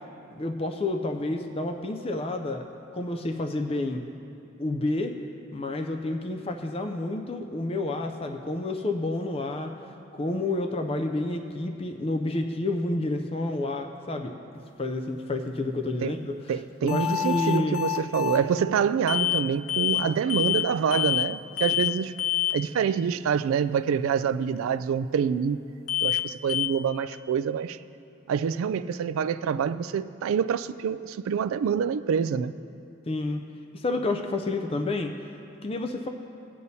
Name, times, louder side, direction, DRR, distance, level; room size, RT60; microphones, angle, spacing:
voice 1, 0.3-2.7 2.9-4.0 4.6-5.2 5.5-9.7 10.1-14.3 14.8-16.4 16.8-17.8 20.0-20.6 33.1-33.4 33.7-35.1 35.6-36.1, left 2 dB, 25° left, 5 dB, 0.4 m, -29 dB
voice 2, 16.5-22.1 22.5-25.6 26.0-27.8 28.3-32.6, right 7 dB, 90° right, 15 dB, 0.3 m, -26 dB
sound 1, 16.9-18.4 19.1-19.4 19.7-20.0 20.3-20.7 20.9-21.3 21.6-21.9 22.2-22.6 25.9-26.2 26.5-26.7, left 13 dB, 90° left, 0.5 m, -26 dB
18.5 x 8.5 x 2.7 m, 2.7 s
head